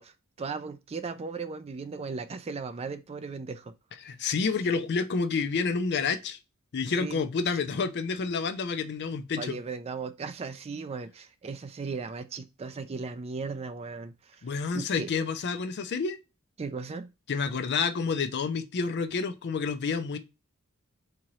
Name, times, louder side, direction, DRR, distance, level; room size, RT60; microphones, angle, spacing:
voice 1, 0.0-3.7 7.0-7.2 7.5-7.6 9.4-14.5 14.7-15.1 16.6-17.1, right 4 dB, 30° right, 0.3 m, -37 dB
voice 2, 4.0-6.4 6.7-9.6 14.4-16.2 17.3-20.2, left 5 dB, 50° left, 0.4 m, -29 dB
3.7 x 2.9 x 3.0 m
head